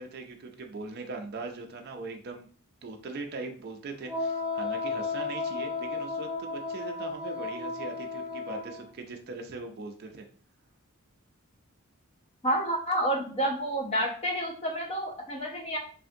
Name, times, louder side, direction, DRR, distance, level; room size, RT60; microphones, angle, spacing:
voice 1, 0.0-2.5 2.8-10.3, right 3 dB, 45° right, 3 dB, 0.4 m, -40 dB
Wind instrument woodwind instrument, 4.1-8.8, left 4 dB, 5° right, 0.7 m, -33 dB
voice 2, 12.4-15.8, right 1 dB, 30° left, 0 dB, 0.7 m, -29 dB
3.3 x 2.5 x 2.6 m, 0.43 s
head